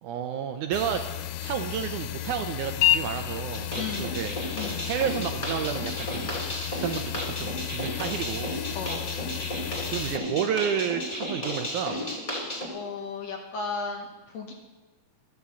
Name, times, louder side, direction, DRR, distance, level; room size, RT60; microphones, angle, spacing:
voice 1, 0.0-1.0 1.4-4.4 4.8-6.4 6.8-8.6 9.9-12.0, right 8 dB, 80° right, 7 dB, 1.9 m, -31 dB
sound 1, 0.7-10.2, left 12 dB, 80° left, 2.2 m, -32 dB
sound 2, 3.5-12.7, left 1 dB, 15° left, 1.5 m, -34 dB
voice 2, 3.7-4.2 4.6-4.9 8.7-9.1 12.7-14.5, left 4 dB, 65° left, 3 dB, 1.9 m, -35 dB
12.5 x 9.3 x 7.1 m, 1.2 s
omnidirectional pair, 4.0 m